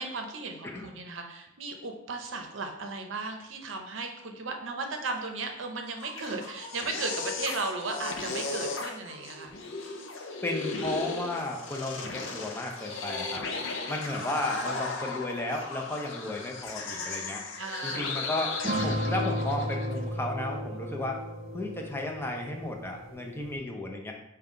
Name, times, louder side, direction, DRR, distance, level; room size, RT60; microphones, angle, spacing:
voice 1, 0.0-9.5 17.6-18.1, right 3 dB, 75° right, 4 dB, 0.6 m, -36 dB
sound 1, 5.8-20.0, left 3 dB, 75° left, 0.5 m, -36 dB
voice 2, 10.4-13.4 13.9-17.4 17.8-21.2 21.5-24.1, left 2 dB, 10° left, 1 dB, 0.5 m, -34 dB
sound 2, 18.6-23.5, equal, 35° right, 0.6 m, -34 dB
5.2 x 2.3 x 3.6 m, 0.90 s
head